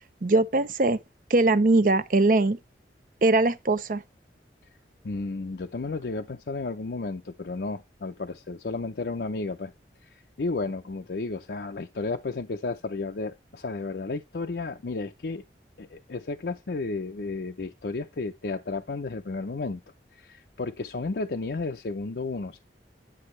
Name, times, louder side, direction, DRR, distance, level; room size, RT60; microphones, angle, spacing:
voice 1, 0.2-1.0 1.3-2.6 3.2-4.0, right 2 dB, 50° right, 0.6 m, -21 dB
voice 2, 5.0-9.7 10.0-15.4 15.8-19.8 20.1-22.6, left 3 dB, 65° left, 0.5 m, -33 dB
9.9 x 6.1 x 3.1 m
head